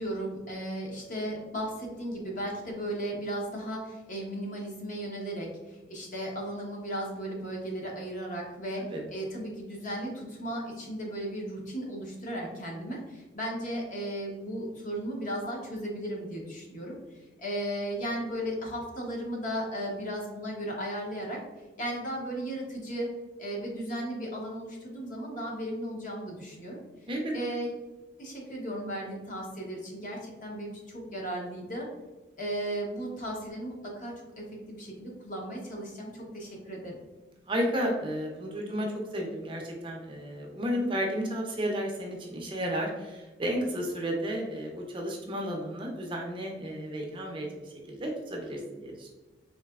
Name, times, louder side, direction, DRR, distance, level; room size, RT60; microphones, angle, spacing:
voice 1, 0.0-8.8 9.1-16.9 17.4-21.4 21.8-23.1 23.4-26.8 27.3-27.7 28.2-31.9 32.4-37.0, right 1 dB, 45° left, -2 dB, 0.8 m, -35 dB
voice 2, 37.5-47.5 47.9-49.1, equal, 25° right, 0 dB, 0.5 m, -32 dB
3.9 x 2.9 x 2.3 m, 1.2 s
head